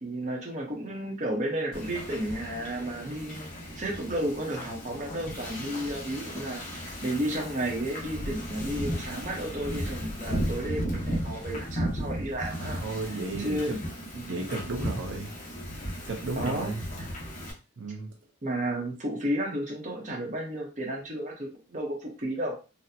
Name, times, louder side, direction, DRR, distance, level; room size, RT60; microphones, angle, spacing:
voice 1, 0.0-3.5 3.8-12.8 13.4-13.8 14.1-14.4 16.4-17.1 18.4-22.6, right 1 dB, 40° right, -1 dB, 0.8 m, -32 dB
Wind / Ocean, 1.7-17.5, equal, 40° left, 0.9 m, -35 dB
voice 2, 12.8-13.6 14.3-15.3 16.1-16.8 17.8-18.1, right 3 dB, 70° right, 2 dB, 0.6 m, -33 dB
4.1 x 2.1 x 2.7 m, 0.32 s
head